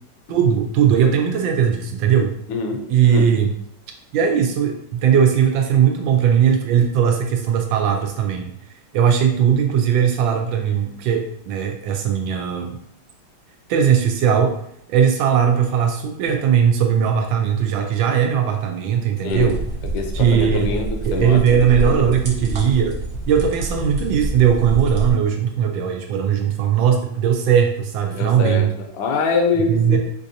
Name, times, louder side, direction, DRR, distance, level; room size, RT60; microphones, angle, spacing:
voice 1, 0.3-2.3 2.9-3.5 4.1-8.5 8.9-12.8 13.7-14.6 14.9-19.6 20.1-20.7 21.0-28.7 29.6-30.0, right 8 dB, 80° right, 4 dB, 1.3 m, -18 dB
voice 2, 2.5-3.3 19.2-19.6 19.9-21.5 21.8-22.1 28.1-30.0, left 4 dB, 80° left, 3 dB, 1.3 m, -24 dB
sound 1, 19.3-25.1, right 2 dB, 60° right, 0.7 m, -27 dB
4.3 x 2.6 x 2.7 m, 0.70 s
omnidirectional pair, 2.1 m